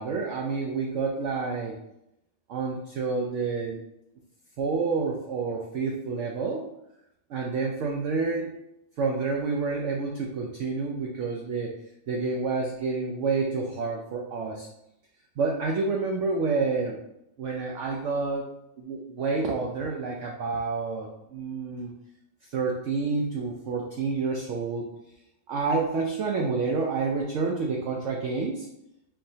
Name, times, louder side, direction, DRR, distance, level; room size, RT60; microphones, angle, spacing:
voice 1, 0.0-1.8 2.5-3.8 4.6-6.7 7.3-8.5 9.0-11.7 12.1-14.7 15.4-17.0 17.4-18.5 18.8-21.9 22.5-24.9 25.5-28.7, right 4 dB, 75° right, 0 dB, 0.6 m, -29 dB
4.6 x 3.1 x 2.7 m, 0.83 s
omnidirectional pair, 1.8 m